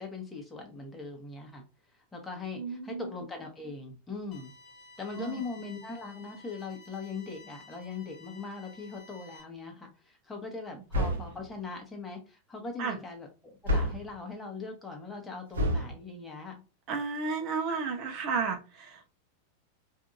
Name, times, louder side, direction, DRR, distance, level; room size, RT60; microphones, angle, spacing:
voice 1, 0.0-1.6 2.1-4.5 5.0-16.6, left 4 dB, 10° left, 1 dB, 1.2 m, -40 dB
voice 2, 2.6-3.1 5.2-5.4 12.8-13.0 16.9-19.1, right 5 dB, 40° right, 3 dB, 0.8 m, -33 dB
sound 1, 4.3-9.4, left 3 dB, 35° left, 1.4 m, -53 dB
sound 2, 10.9-11.5 13.7-14.2 15.5-16.0, equal, 65° right, 1.0 m, -28 dB
4.9 x 2.7 x 2.5 m, 0.31 s
figure-of-eight pair, 90°, 0 cm